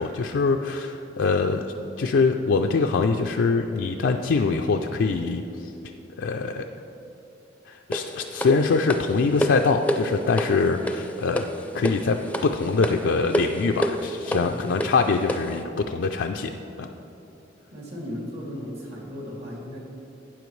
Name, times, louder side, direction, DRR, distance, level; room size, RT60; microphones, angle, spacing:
voice 1, 0.0-1.7 2.0-5.7 6.2-6.7 7.7-11.5 11.7-16.5 16.8-16.9, left 4 dB, 85° left, 3 dB, 0.4 m, -23 dB
sound 1, 7.9-15.6, equal, 10° left, 0.4 m, -29 dB
voice 2, 14.3-14.6 17.7-19.8, equal, 65° right, -3 dB, 2.4 m, -36 dB
12.0 x 9.1 x 3.2 m, 3.0 s
head